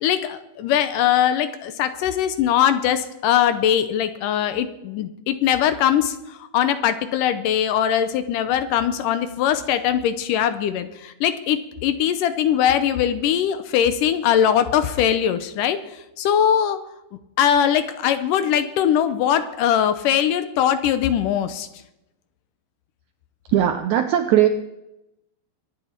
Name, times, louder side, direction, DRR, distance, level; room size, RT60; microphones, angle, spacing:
voice 1, 0.0-16.8 17.4-21.7, left 9 dB, 75° left, 11 dB, 2.2 m, -21 dB
voice 2, 23.5-24.5, right 11 dB, 80° right, 8 dB, 1.7 m, -18 dB
23.0 x 9.7 x 4.5 m, 0.91 s
omnidirectional pair, 4.1 m